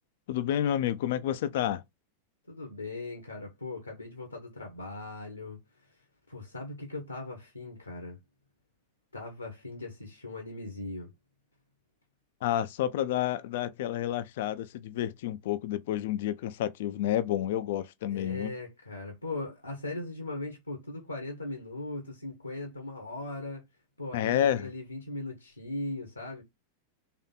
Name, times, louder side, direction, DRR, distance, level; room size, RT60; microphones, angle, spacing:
voice 1, 0.3-1.8 12.4-18.5 24.1-24.7, left 11 dB, 55° left, 0.5 m, -30 dB
voice 2, 2.5-5.6 6.3-8.2 9.1-11.1 18.1-23.6 24.0-26.4, left 2 dB, 85° left, 1.3 m, -39 dB
3.7 x 3.5 x 4.0 m
figure-of-eight pair, 90°, 0 cm